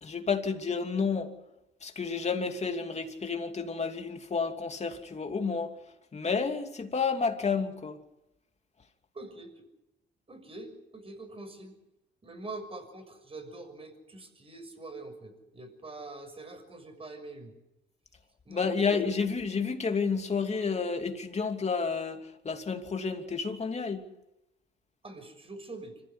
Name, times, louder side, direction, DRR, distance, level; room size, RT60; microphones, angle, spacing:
voice 1, 0.0-1.3 1.8-5.8 6.1-8.0 18.5-24.1, left 5 dB, 35° left, 2.9 m, -30 dB
voice 2, 9.1-9.7 10.3-11.7 12.2-17.5 18.4-19.0 25.0-26.0, right 2 dB, 30° right, 6.5 m, -44 dB
26.0 x 15.0 x 9.9 m
cardioid pair, 90°, 20 cm